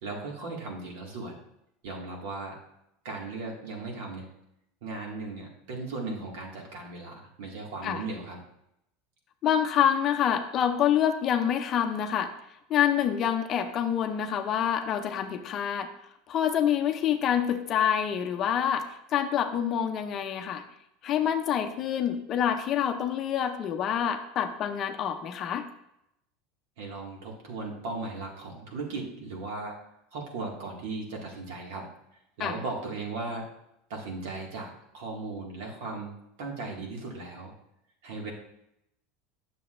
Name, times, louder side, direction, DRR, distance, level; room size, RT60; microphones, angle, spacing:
voice 1, 0.0-1.4 1.8-2.6 3.0-4.3 4.8-8.4 26.8-29.8 30.1-31.9 32.4-33.5 33.9-36.1 36.4-37.5 38.0-38.3, right 3 dB, 70° right, -1 dB, 2.1 m, -37 dB
voice 2, 9.4-12.3 12.7-15.9 16.3-20.6 21.0-25.7 32.4-32.6, left 9 dB, 35° left, 6 dB, 0.6 m, -27 dB
9.8 x 6.7 x 2.6 m, 0.81 s
supercardioid pair, 150°, 0 cm